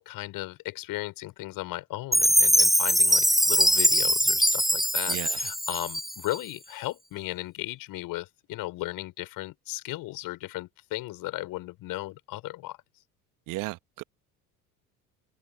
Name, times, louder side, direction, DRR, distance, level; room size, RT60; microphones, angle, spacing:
voice 1, 0.0-12.8, left 17 dB, 50° left, 6.3 m, -36 dB
Chime, 2.1-6.4, equal, ahead, 1.6 m, -22 dB
voice 2, 13.5-14.0, right 21 dB, 45° right, 1.6 m, -34 dB
figure-of-eight pair, 65°, 43 cm